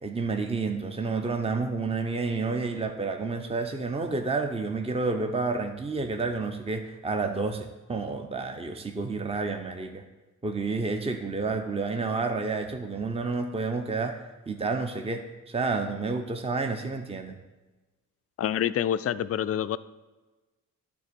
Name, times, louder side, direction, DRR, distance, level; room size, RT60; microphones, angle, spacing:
voice 1, 0.0-10.0 10.4-17.4, right 3 dB, 15° right, 5 dB, 0.8 m, -30 dB
voice 2, 18.4-19.8, left 10 dB, 45° left, 15 dB, 0.4 m, -27 dB
9.7 x 3.7 x 6.9 m, 1.2 s
supercardioid pair, 60°, 35 cm